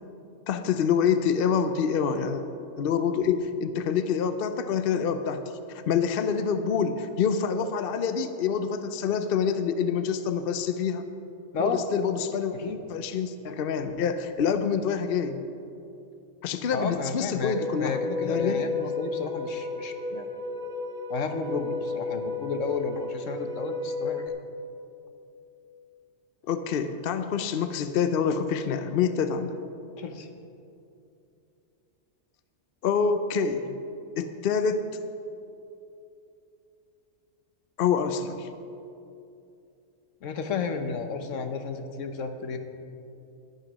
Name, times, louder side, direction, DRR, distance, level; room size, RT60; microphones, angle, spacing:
voice 1, 0.5-2.4 2.8-11.1 11.6-12.5 12.9-15.4 16.4-18.9 26.5-29.5 32.8-33.8 34.2-34.9 37.8-38.5, left 6 dB, 55° left, 10 dB, 0.7 m, -26 dB
voice 2, 16.7-20.3 21.1-24.2 30.0-30.3 40.2-42.6, left 4 dB, 75° left, 6 dB, 1.2 m, -32 dB
sound 1, 17.4-24.3, left 3 dB, 40° right, 1.4 m, -33 dB
12.0 x 8.9 x 6.2 m, 2.7 s
omnidirectional pair, 1.3 m